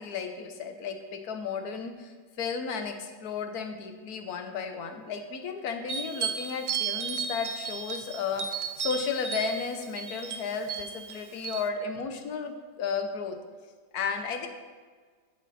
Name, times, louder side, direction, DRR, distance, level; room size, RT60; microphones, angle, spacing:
voice 1, 0.0-13.4 13.9-14.5, left 5 dB, 65° left, 6 dB, 1.3 m, -34 dB
sound 1, 5.9-11.7, right 6 dB, 90° right, 0.5 m, -34 dB
14.0 x 5.1 x 4.1 m, 1.5 s
omnidirectional pair, 1.9 m